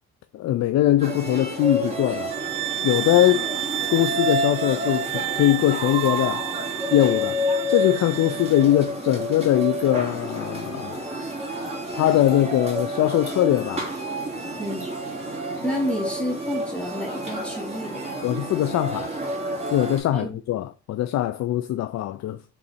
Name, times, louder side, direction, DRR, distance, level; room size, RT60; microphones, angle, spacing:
voice 1, 0.3-2.3 2.8-3.5 3.9-6.4 6.9-7.4 7.7-11.0 11.9-13.9 18.2-19.1 19.7-22.4, left 13 dB, 60° left, 0.5 m, -21 dB
sound 1, 1.0-20.0, equal, 20° right, 2.8 m, -30 dB
sound 2, 2.3-8.7, right 15 dB, 80° right, 0.5 m, -31 dB
voice 2, 14.6-14.9 15.6-18.2 20.1-20.4, equal, 5° left, 2.8 m, -29 dB
5.6 x 3.9 x 4.3 m
cardioid pair, 90°, 30 cm